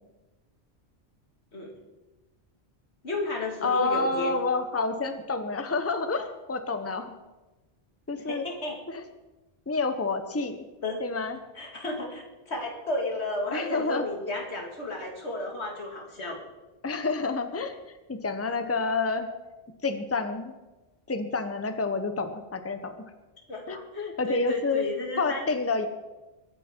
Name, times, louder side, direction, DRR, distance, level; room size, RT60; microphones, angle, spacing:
voice 1, 3.0-4.4 8.3-8.8 10.8-11.0 11.5-16.4 23.5-25.5, left 1 dB, 85° left, 0 dB, 2.7 m, -33 dB
voice 2, 3.6-7.1 8.1-8.4 8.9-9.0 9.7-10.6 11.0-11.4 13.5-14.3 16.8-17.8 18.1-19.3 19.8-20.5 21.1-23.0 23.7-24.9 25.2-25.9, left 3 dB, 15° left, 8 dB, 0.9 m, -29 dB
22.0 x 9.6 x 4.5 m, 1.1 s
omnidirectional pair, 1.1 m